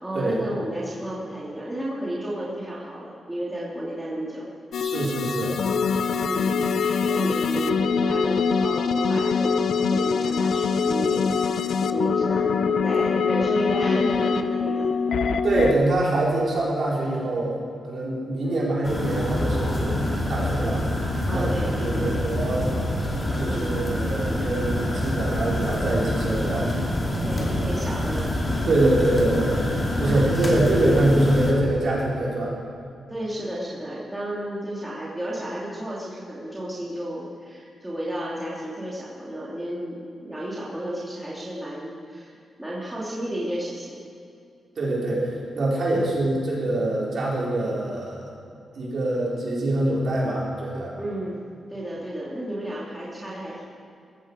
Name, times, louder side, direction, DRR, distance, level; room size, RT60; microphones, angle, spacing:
voice 1, 0.0-4.5 6.1-14.9 18.4-18.7 21.3-22.4 23.5-23.8 27.2-28.3 30.0-30.7 33.1-44.0 45.9-46.2 51.0-51.4 51.7-53.7, right 1 dB, 5° right, -6 dB, 2.7 m, -32 dB
sound 1, 4.7-15.7, left 5 dB, 70° left, 0.8 m, -23 dB
voice 2, 4.8-5.6 15.4-20.9 21.3-21.5 21.8-22.7 23.4-26.7 28.7-29.6 30.0-32.5 44.7-48.3 48.7-50.9, right 1 dB, 55° right, -5 dB, 4.9 m, -24 dB
sound 2, 18.8-31.5, left 1 dB, 20° left, 2.9 m, -26 dB
19.5 x 15.0 x 5.0 m, 2.5 s
wide cardioid pair, 160°, 0 cm